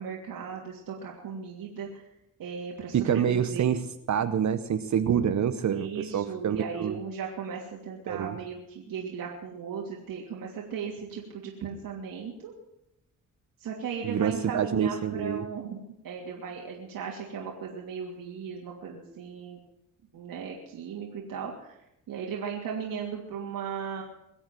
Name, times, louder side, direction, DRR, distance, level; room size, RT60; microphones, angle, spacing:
voice 1, 0.0-2.1 2.4-3.7 5.0-5.1 5.7-12.5 13.6-19.6 20.1-21.8 22.1-24.0, right 6 dB, 85° right, -1 dB, 2.9 m, -37 dB
voice 2, 2.9-3.8 4.1-7.0 8.1-8.4 14.0-15.4, right 8 dB, 55° right, 9 dB, 1.0 m, -27 dB
23.0 x 8.0 x 7.8 m, 0.82 s
cardioid pair, 100°, 33 cm